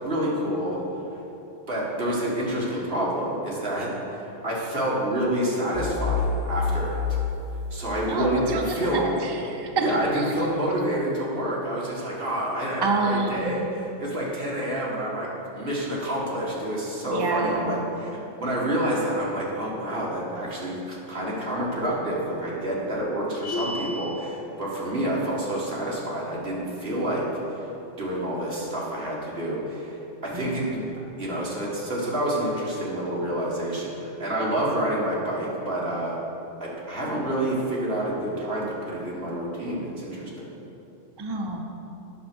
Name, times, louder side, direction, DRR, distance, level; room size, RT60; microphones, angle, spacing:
voice 1, 0.0-0.8 1.7-7.0 7.7-9.0 9.8-18.1 18.4-27.3 27.5-27.7 28.0-30.0 30.2-30.8 31.2-36.2 36.6-40.5, right 1 dB, 50° right, -5 dB, 2.1 m, -28 dB
sound 1, 5.7-8.6, left 4 dB, 60° left, 0.5 m, -28 dB
voice 2, 8.1-9.8 10.1-10.2 12.8-13.7 17.1-17.8 30.3-30.5 41.2-41.6, right 3 dB, 30° right, 2 dB, 0.5 m, -28 dB
sound 2, 23.4-24.3, left 1 dB, 75° left, 1.1 m, -31 dB
9.5 x 6.3 x 6.1 m, 2.9 s
omnidirectional pair, 1.2 m